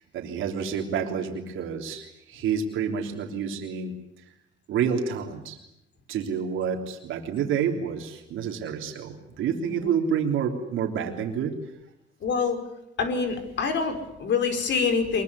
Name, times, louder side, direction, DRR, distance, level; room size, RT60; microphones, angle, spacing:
voice 1, 0.0-3.9 4.7-5.6 6.1-11.5, right 7 dB, 85° right, 2 dB, 3.4 m, -28 dB
voice 2, 12.2-12.6 13.0-15.2, left 5 dB, 65° left, 6 dB, 5.3 m, -26 dB
23.5 x 22.0 x 9.7 m, 0.82 s
cardioid pair, 90°, 20 cm